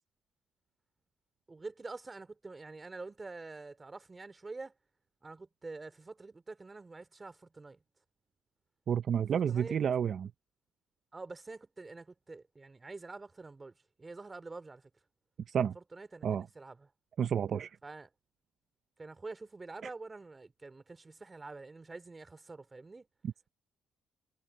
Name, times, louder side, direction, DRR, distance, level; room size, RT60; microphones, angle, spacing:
voice 1, 1.5-4.7 5.2-7.8 9.3-9.8 11.1-13.7 14.0-14.9 15.7-16.9 17.8-18.1 19.0-23.1, right 3 dB, 20° right, 2.8 m, -46 dB
voice 2, 8.9-10.3 15.5-15.8 16.2-16.5 17.2-17.8 23.2-23.5, right 8 dB, 50° right, 0.6 m, -30 dB
cardioid pair, 100°, 0 cm